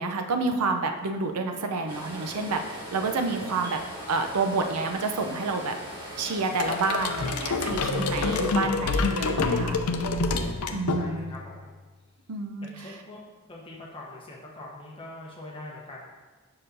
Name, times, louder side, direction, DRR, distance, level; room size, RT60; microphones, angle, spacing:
voice 1, 0.0-3.8 4.1-9.8 10.7-11.3 12.3-12.7, right 3 dB, 90° right, 5 dB, 0.6 m, -29 dB
sound 1, 1.9-8.5, equal, 20° right, 1.2 m, -40 dB
sound 2, 6.6-11.4, left 3 dB, 85° left, 0.5 m, -27 dB
voice 2, 9.9-11.7 12.6-13.2 13.4-16.0, left 2 dB, 25° left, -3 dB, 1.0 m, -44 dB
6.6 x 5.7 x 2.6 m, 1.3 s
head